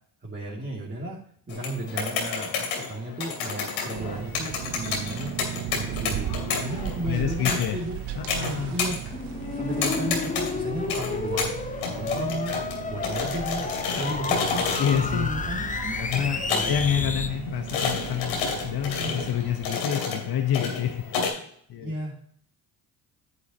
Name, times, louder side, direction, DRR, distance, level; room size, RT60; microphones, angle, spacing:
voice 1, 0.2-5.5 5.7-6.3 6.6-8.0 8.7-9.0 9.5-11.5 11.9-12.6 12.9-14.7 14.9-16.0 16.5-16.7 18.9-19.3 21.8-22.2, right 1 dB, 25° right, -5 dB, 2.8 m, -34 dB
sound 1, 1.5-21.3, left 5 dB, 80° left, 2.9 m, -31 dB
sound 2, 3.9-19.7, right 11 dB, 65° right, 1.0 m, -37 dB
voice 2, 7.1-7.8 8.1-8.8 14.8-15.3 16.0-21.3 21.7-21.9, left 9 dB, 55° left, 5 dB, 1.3 m, -28 dB
sound 3, 9.1-17.3, left 4 dB, 15° left, 0.8 m, -31 dB
9.7 x 8.2 x 3.0 m, 0.62 s
supercardioid pair, 75°, 45 cm